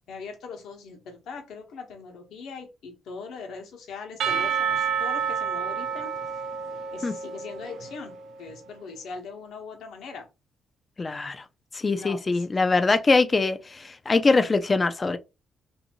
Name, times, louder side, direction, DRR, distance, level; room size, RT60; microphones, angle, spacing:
voice 1, 0.1-6.4 6.9-10.3 12.0-12.5, left 5 dB, 75° left, 0.9 m, -41 dB
Percussion / Church bell, 4.2-8.2, right 7 dB, 65° right, 0.5 m, -29 dB
voice 2, 11.0-11.4 11.7-15.2, left 3 dB, 30° left, 0.4 m, -23 dB
2.6 x 2.6 x 2.8 m
cardioid pair, 90°, 0 cm